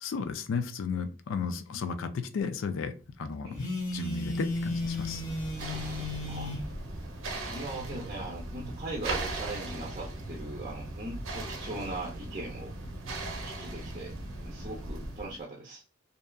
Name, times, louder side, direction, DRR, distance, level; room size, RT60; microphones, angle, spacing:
voice 1, 0.0-2.9 3.2-3.6 3.9-5.2, left 5 dB, 70° left, 10 dB, 0.4 m, -33 dB
Telephone, 3.5-6.7, left 2 dB, 40° left, 0.9 m, -34 dB
sound 1, 3.9-15.4, right 2 dB, 75° right, 0.6 m, -39 dB
voice 2, 7.5-12.7 13.4-14.2 14.4-15.8, right 2 dB, 35° right, -2 dB, 0.6 m, -39 dB
2.7 x 2.3 x 2.2 m, 0.33 s
head